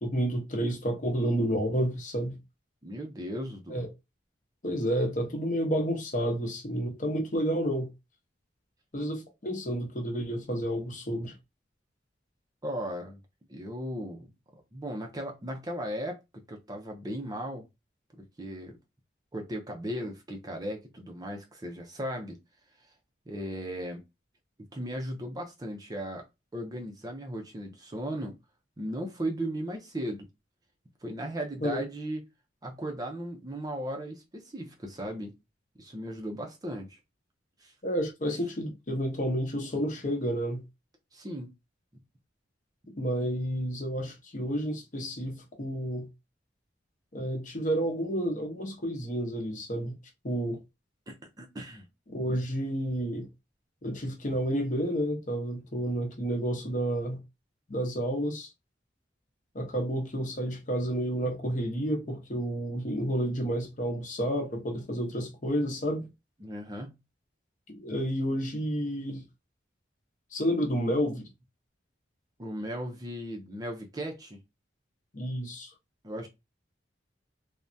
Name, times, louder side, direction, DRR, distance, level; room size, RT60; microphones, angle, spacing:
voice 1, 0.0-2.4 3.7-3.9 4.6-7.9 8.9-11.3 31.6-31.8 37.8-40.6 43.0-46.1 47.1-50.0 50.2-50.6 52.1-53.3 53.8-57.2 57.7-58.5 59.5-66.1 67.7-69.2 70.3-71.3 75.1-75.7, equal, 40° left, 0.8 m, -30 dB
voice 2, 2.8-3.9 12.6-13.2 13.5-14.3 14.7-16.2 16.5-17.6 18.2-18.8 19.3-22.4 23.3-24.0 24.7-26.2 26.5-28.3 28.8-30.3 31.0-32.2 32.6-35.3 35.8-37.0 37.6-37.7 41.1-41.5 51.1-51.9 66.4-67.0 72.4-74.4 76.0-76.3, equal, 20° right, 0.5 m, -36 dB
3.3 x 2.1 x 2.6 m
head